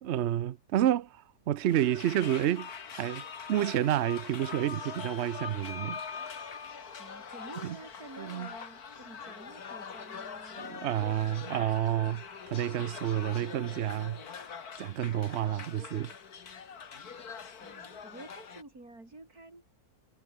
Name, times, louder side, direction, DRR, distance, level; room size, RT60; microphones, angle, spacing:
voice 1, 0.0-6.0 7.6-7.8 8.2-8.5 10.6-14.2 14.8-16.1, right 11 dB, 60° right, 0.8 m, -30 dB
sound 1, 1.6-18.6, left 6 dB, 80° left, 2.3 m, -43 dB
Bell / Doorbell, 5.0-10.1, left 4 dB, 45° left, 2.4 m, -49 dB
voice 2, 7.0-10.8 17.6-19.7, right 2 dB, 80° right, 7.1 m, -50 dB
omnidirectional pair, 1.6 m